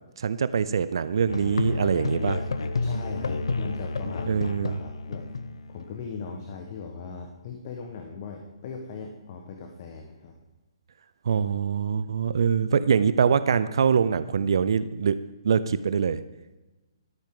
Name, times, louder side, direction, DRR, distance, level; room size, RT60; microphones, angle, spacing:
voice 1, 0.2-2.4 4.3-4.8 11.3-16.2, right 6 dB, 65° right, 14 dB, 0.5 m, -24 dB
Musical instrument, 1.3-6.1, left 3 dB, 75° left, 0.8 m, -30 dB
voice 2, 2.8-5.3 5.7-10.4, left 5 dB, 45° left, 3 dB, 1.2 m, -39 dB
12.5 x 9.8 x 3.8 m, 1.1 s
figure-of-eight pair, 135°, 3 cm